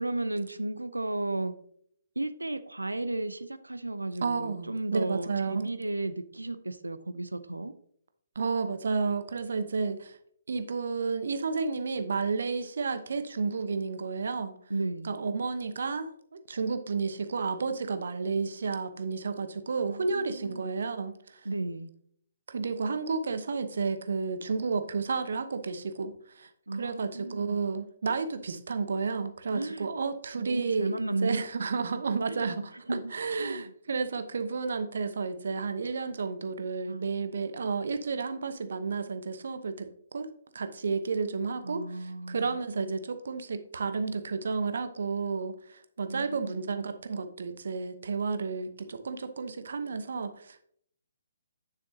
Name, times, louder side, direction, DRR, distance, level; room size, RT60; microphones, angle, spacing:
voice 1, 0.0-1.5 2.2-7.7 14.7-15.2 19.8-20.7 21.4-21.9 26.7-27.6 29.5-29.9 30.3-31.4 32.3-32.5 32.9-33.1 33.4-33.7 36.9-37.2 41.6-42.6 46.1-46.7, right 2 dB, 85° right, 0.6 m, -34 dB
voice 2, 4.2-5.7 8.3-10.2 10.5-14.5 15.0-16.1 16.5-21.5 22.5-26.5 26.8-39.9 40.1-50.6, right 4 dB, 60° right, 0.9 m, -31 dB
9.1 x 7.0 x 2.8 m
figure-of-eight pair, 135°, 0 cm